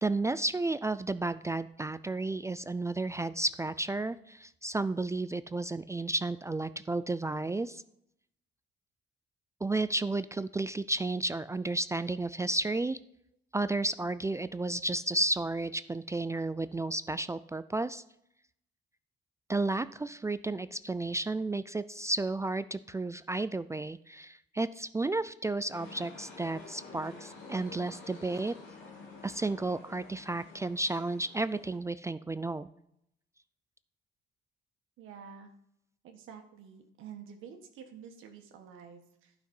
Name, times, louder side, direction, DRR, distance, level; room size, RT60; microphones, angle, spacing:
voice 1, 0.0-7.8 9.6-13.0 13.5-18.0 19.5-28.5 29.2-32.7, right 2 dB, 15° right, 14 dB, 0.3 m, -32 dB
sound 1, 25.7-31.8, left 3 dB, 90° left, 2.8 m, -49 dB
voice 2, 35.0-35.5 36.0-39.3, right 7 dB, 85° right, 4 dB, 1.5 m, -49 dB
11.5 x 5.9 x 5.5 m, 0.77 s
cardioid pair, 90°, 20 cm